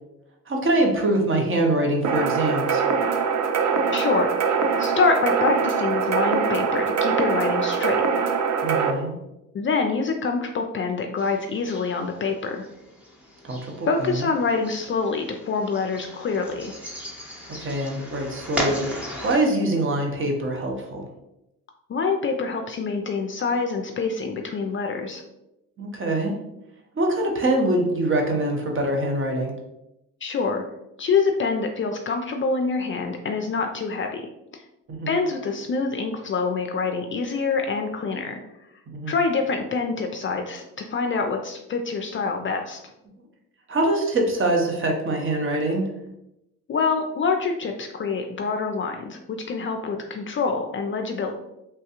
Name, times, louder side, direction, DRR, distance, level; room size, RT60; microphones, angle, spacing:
voice 1, 0.5-2.8 8.6-9.1 13.4-14.2 17.6-21.1 25.8-26.4 27.0-29.5 34.9-35.1 38.9-39.2 43.7-45.9, right 1 dB, 35° right, 1 dB, 0.9 m, -24 dB
sound 1, 2.0-8.9, right 5 dB, 55° right, 0.5 m, -23 dB
voice 2, 3.9-4.3 4.8-8.0 9.5-12.7 13.9-16.7 21.9-25.2 30.2-30.6 31.0-34.6 35.1-38.4 39.1-42.8 46.7-51.3, left 4 dB, 35° left, 4 dB, 0.4 m, -26 dB
sound 2, 11.2-19.4, equal, 5° right, 0.8 m, -36 dB
3.2 x 2.3 x 2.9 m, 0.88 s
supercardioid pair, 60°, 35 cm